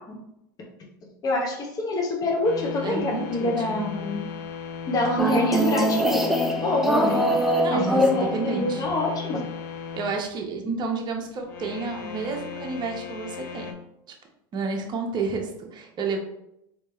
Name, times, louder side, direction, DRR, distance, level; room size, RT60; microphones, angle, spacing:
voice 1, 1.2-4.2 4.9-6.2 6.6-9.4, left 2 dB, 30° left, 0 dB, 0.8 m, -26 dB
sound 1, 2.4-10.1 11.4-13.7, left 7 dB, 80° left, 0.6 m, -36 dB
voice 2, 2.8-3.9 7.6-8.8 9.9-13.7 14.5-16.2, right 4 dB, 40° right, 2 dB, 0.8 m, -30 dB
sound 2, 5.2-8.7, equal, ahead, 0.5 m, -23 dB
3.4 x 2.8 x 3.1 m, 0.81 s
hypercardioid pair, 95°, 12 cm